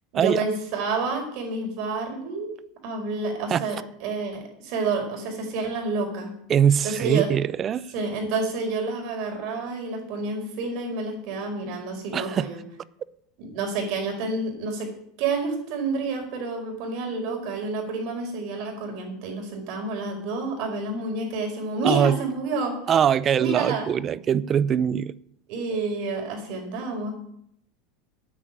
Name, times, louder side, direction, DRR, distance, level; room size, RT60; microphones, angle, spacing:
voice 1, 0.1-2.5 2.8-6.4 6.8-7.3 7.9-12.6 13.4-14.9 15.2-22.9 23.4-23.9 25.5-27.1, right 3 dB, 60° right, 4.9 m, -29 dB
voice 2, 6.5-7.9 12.1-12.5 21.8-22.2 22.9-25.1, right 8 dB, 30° right, 0.5 m, -22 dB
9.1 x 8.5 x 9.0 m
supercardioid pair, 140°, 0 cm